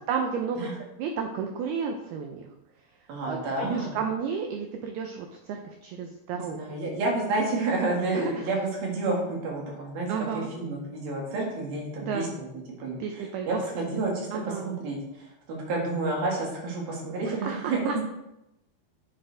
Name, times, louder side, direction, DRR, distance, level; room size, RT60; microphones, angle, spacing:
voice 1, 0.1-0.7 1.0-2.5 3.2-6.6 8.1-8.4 10.1-10.5 12.0-12.3 13.0-13.5 14.3-14.7 17.3-18.0, right 6 dB, 90° right, 4 dB, 2.2 m, -32 dB
voice 2, 3.1-3.9 6.3-10.1 10.3-12.5 12.8-18.0, right 2 dB, 55° right, -2 dB, 3.4 m, -30 dB
11.0 x 7.8 x 3.5 m, 0.89 s
omnidirectional pair, 5.6 m